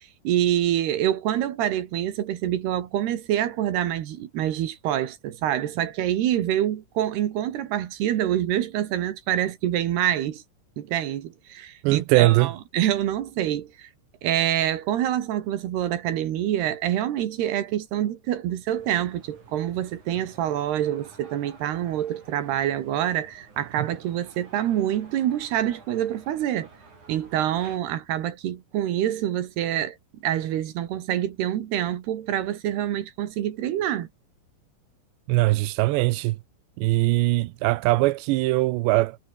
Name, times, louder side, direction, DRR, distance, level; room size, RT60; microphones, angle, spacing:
voice 1, 0.0-10.4 10.8-13.9 14.2-26.7 27.1-30.0 30.2-34.1, right 11 dB, 70° right, 3.6 m, -26 dB
voice 2, 11.8-12.5 35.3-36.4 36.8-39.2, right 19 dB, 90° right, 3.0 m, -21 dB
sound 1, 18.7-27.8, right 4 dB, 45° right, 7.4 m, -51 dB
omnidirectional pair, 5.0 m